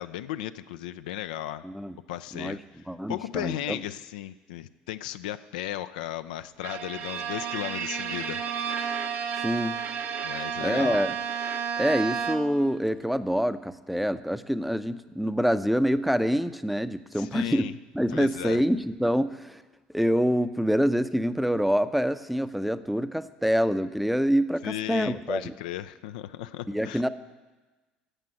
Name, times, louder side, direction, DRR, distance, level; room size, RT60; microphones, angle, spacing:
voice 1, 0.0-1.6 2.1-2.6 3.1-9.0 10.2-11.0 17.1-17.8 18.1-18.6 24.6-27.0, left 13 dB, 75° left, 12 dB, 0.4 m, -35 dB
voice 2, 1.6-1.9 2.3-2.6 2.9-3.8 9.4-9.8 10.6-11.1 11.8-17.7 17.9-19.6 19.9-25.5 26.7-27.1, equal, ahead, 12 dB, 0.6 m, -26 dB
Bowed string instrument, 6.6-12.7, right 7 dB, 55° right, 1.0 m, -32 dB
11.5 x 7.5 x 7.5 m, 1.2 s
hypercardioid pair, 65°, 4 cm